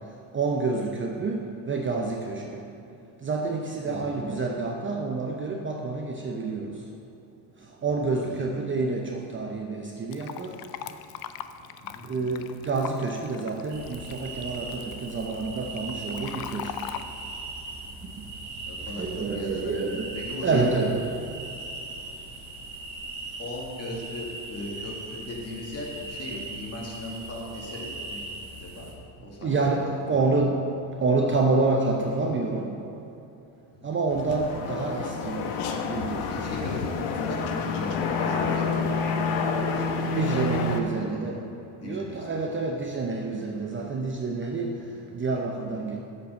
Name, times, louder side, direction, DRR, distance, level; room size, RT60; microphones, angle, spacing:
voice 1, 0.3-1.4 1.7-2.6 3.2-6.7 7.8-10.5 12.1-16.7 19.0-21.1 29.4-30.6 31.0-32.8 33.8-35.5 35.8-36.3 40.1-41.4 41.8-44.7 45.1-46.0, right 3 dB, 25° right, 1 dB, 0.7 m, -28 dB
Fill (with liquid), 10.1-17.0, left 10 dB, 50° left, 0.5 m, -40 dB
sound 1, 13.7-28.9, right 2 dB, 75° right, 2.1 m, -39 dB
voice 2, 18.7-19.8 20.1-20.6 23.4-28.3 28.6-28.9 29.2-29.6 29.9-30.2 33.7-33.9 36.3-39.8 40.7-41.4 41.8-42.3, left 1 dB, 30° left, -2 dB, 2.1 m, -38 dB
sound 2, 34.1-40.8, left 4 dB, 70° left, 1.0 m, -28 dB
8.5 x 5.5 x 6.5 m, 2.8 s
cardioid pair, 110°, 48 cm